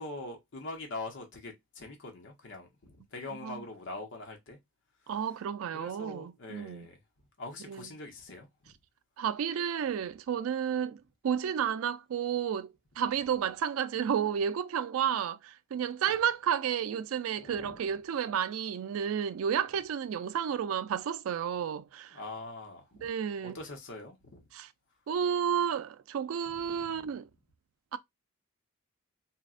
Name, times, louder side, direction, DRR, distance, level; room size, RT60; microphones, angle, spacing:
voice 1, 0.0-4.6 5.7-7.0 7.4-8.5 17.4-17.8 22.1-23.1 23.4-24.4 26.7-27.1, left 2 dB, 65° left, 0.9 m, -43 dB
voice 2, 5.1-6.9 7.7-7.9 9.2-22.2 23.0-23.6 24.5-24.7 25.1-27.3 27.9-28.0, right 8 dB, 90° right, 0.3 m, -31 dB
4.1 x 2.1 x 2.4 m
head